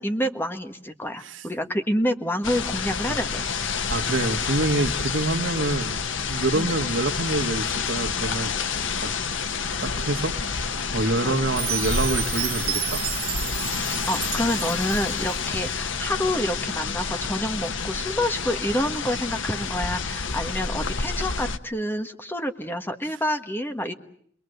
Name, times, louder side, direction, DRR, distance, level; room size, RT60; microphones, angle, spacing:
voice 1, 0.0-3.4 6.5-6.7 11.2-11.4 13.9-23.9, equal, 10° left, 6 dB, 1.5 m, -28 dB
sound 1, 2.4-21.6, left 5 dB, 90° left, 1.2 m, -29 dB
voice 2, 3.9-6.0 6.3-8.5 9.0-9.1 9.8-13.0, right 2 dB, 90° right, 5 dB, 1.6 m, -26 dB
Chime, 11.6-15.6, right 13 dB, 55° right, 1.7 m, -31 dB
29.0 x 22.0 x 8.0 m, 0.66 s
head